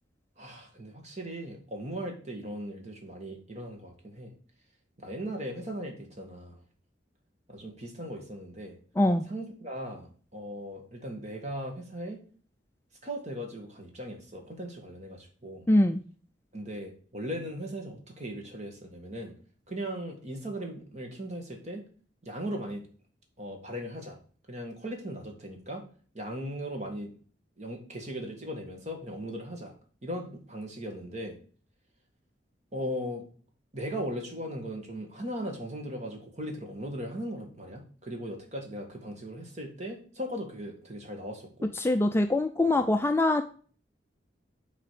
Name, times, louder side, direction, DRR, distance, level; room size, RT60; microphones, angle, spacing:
voice 1, 0.4-4.3 5.0-6.6 7.5-8.8 9.3-12.2 13.0-15.7 16.5-19.3 19.7-21.8 22.2-22.9 23.4-24.2 24.5-25.8 26.1-27.1 27.6-29.7 30.0-31.4 32.7-33.2 33.7-41.7 42.6-42.8, equal, 40° right, 2 dB, 1.8 m, -38 dB
voice 2, 15.7-16.0 41.8-43.4, left 1 dB, 15° left, 6 dB, 0.3 m, -23 dB
7.3 x 4.1 x 4.9 m, 0.41 s
head